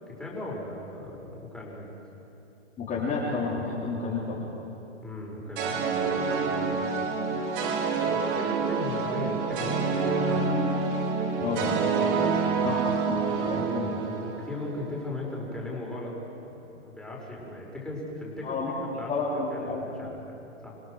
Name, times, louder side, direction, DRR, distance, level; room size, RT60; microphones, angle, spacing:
voice 1, 0.1-1.9 5.0-5.8 6.0-7.2 8.0-10.7 12.1-12.8 13.1-13.8 14.2-16.1 16.4-16.6 16.8-20.8, left 2 dB, ahead, -4 dB, 5.3 m, -38 dB
voice 2, 2.8-4.4 11.4-11.8 12.6-12.8 13.1-14.0 18.4-18.7 19.1-19.8, left 4 dB, 20° left, -7 dB, 3.7 m, -30 dB
sound 1, 5.6-14.9, right 5 dB, 45° right, 2.8 m, -27 dB
27.0 x 17.5 x 6.5 m, 2.8 s
hypercardioid pair, 130°, 36 cm